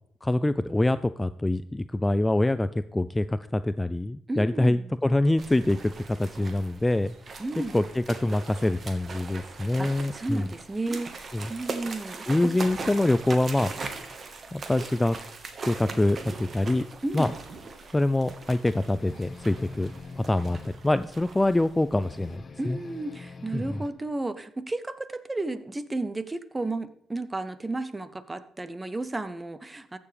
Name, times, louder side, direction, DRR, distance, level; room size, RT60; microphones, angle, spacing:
voice 1, 0.2-7.1 7.7-10.5 11.3-11.5 12.3-13.7 14.5-15.2 15.7-16.8 17.1-17.3 17.9-22.8 23.5-23.8, left 1 dB, 10° left, 13 dB, 0.3 m, -25 dB
voice 2, 4.3-4.9 7.4-7.9 9.8-12.5 17.0-17.4 22.6-30.0, right 2 dB, 15° right, 13 dB, 0.7 m, -33 dB
sound 1, 5.4-22.4, right 4 dB, 45° right, 1.3 m, -40 dB
sound 2, 19.0-20.8 22.0-23.9, left 4 dB, 40° left, 1.1 m, -44 dB
14.5 x 6.9 x 3.3 m, 0.69 s
cardioid pair, 90°, 0 cm